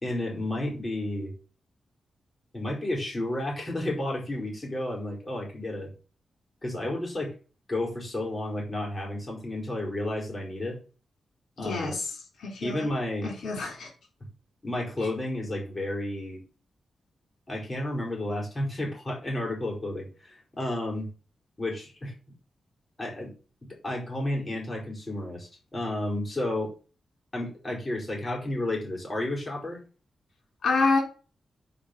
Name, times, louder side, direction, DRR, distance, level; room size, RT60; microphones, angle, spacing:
voice 1, 0.0-1.3 2.5-5.9 6.6-7.3 7.7-10.8 11.6-12.0 12.6-13.3 14.6-16.4 17.5-21.1 21.6-22.1 23.0-23.3 23.8-26.7 27.3-29.8, left 1 dB, 25° left, -1 dB, 4.8 m, -32 dB
voice 2, 11.6-12.1 12.4-12.9 13.2-13.9 30.6-31.0, left 3 dB, 85° left, 1 dB, 3.9 m, -27 dB
8.8 x 5.2 x 6.0 m, 0.36 s
wide cardioid pair, 100°, 0 cm